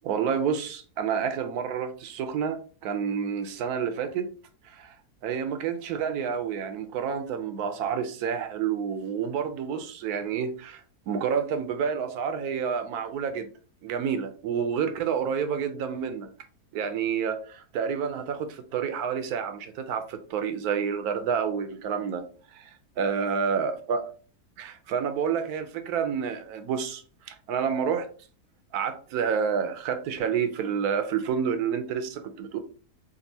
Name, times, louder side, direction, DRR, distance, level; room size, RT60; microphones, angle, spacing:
voice 1, 0.0-4.3 4.6-4.9 5.2-13.5 13.8-16.3 16.7-22.2 22.5-22.6 23.0-24.0 24.6-28.1 28.7-32.6, right 7 dB, 70° right, 1.0 m, -29 dB
5.2 x 2.4 x 2.7 m
omnidirectional pair, 1.8 m